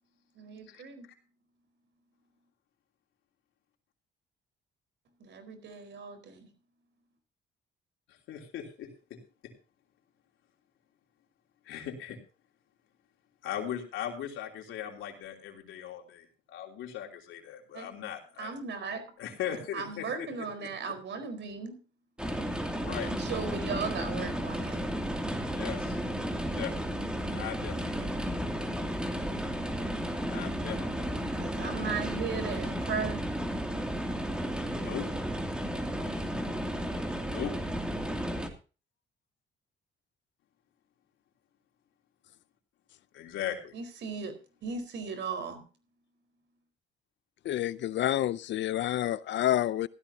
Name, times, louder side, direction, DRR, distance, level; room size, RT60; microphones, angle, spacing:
voice 1, 0.4-1.1 5.2-6.5 17.7-17.9 18.4-19.0 19.7-21.8 23.0-24.8 31.4-33.2 43.7-44.3 44.6-45.6, right 5 dB, 65° right, 4.5 m, -37 dB
voice 2, 8.3-9.5 11.6-12.2 13.4-18.5 19.2-20.3 20.6-20.7 22.8-23.1 25.5-26.0 26.5-27.0 27.3-28.1 30.3-31.3 34.8-35.1 37.2-37.5 43.1-43.7, left 9 dB, 85° left, 3.2 m, -39 dB
sound 1, 22.2-38.5, equal, 5° right, 2.6 m, -33 dB
voice 3, 47.4-49.9, left 12 dB, 65° left, 0.6 m, -28 dB
16.0 x 13.5 x 2.8 m
cardioid pair, 90°, 20 cm